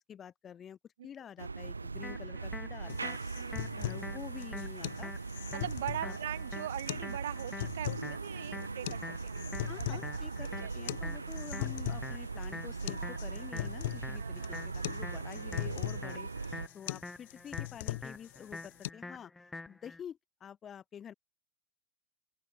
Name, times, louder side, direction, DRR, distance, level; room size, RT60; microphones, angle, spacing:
voice 1, 0.0-3.2 3.7-5.1 6.0-6.1 9.7-19.3 19.7-21.1, left 8 dB, 25° left, 3.8 m, -48 dB
sound 1, 1.4-16.7, right 4 dB, 80° right, 2.0 m, -40 dB
sound 2, 2.0-20.0, left 2 dB, 10° left, 2.5 m, -47 dB
sound 3, 2.9-18.9, left 17 dB, 55° left, 2.2 m, -41 dB
voice 2, 3.4-3.8 5.5-10.3 10.6-10.7 14.1-14.7, right 12 dB, 60° right, 1.8 m, -42 dB
open air
figure-of-eight pair, 90°, 0 cm